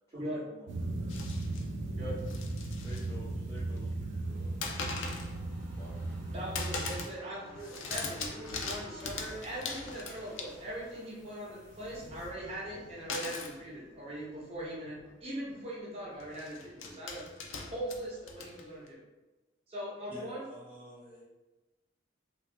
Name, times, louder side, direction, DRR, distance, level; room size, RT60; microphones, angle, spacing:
voice 1, 0.1-1.3 2.7-4.6 5.1-5.4 5.8-6.5, equal, 15° left, -7 dB, 0.3 m, -52 dB
sound 1, 0.7-7.1, right 2 dB, 70° right, 0.3 m, -37 dB
sound 2, 1.1-1.6 2.2-3.1 3.4-3.9 4.6-5.3 5.7-6.2 6.5-7.2 7.5-10.8 13.1-13.6 14.5-14.6 14.9-15.1 16.2-18.9, left 4 dB, 90° left, 0.4 m, -40 dB
sound 3, 4.0-17.5 17.8-17.9, equal, 60° left, 0.9 m, -55 dB
voice 2, 6.3-17.2 17.7-19.0 19.7-20.4, right 1 dB, 30° right, -6 dB, 0.7 m, -40 dB
voice 3, 20.1-21.2, equal, 10° right, -9 dB, 1.1 m, -49 dB
2.7 x 2.3 x 3.2 m, 1.2 s
head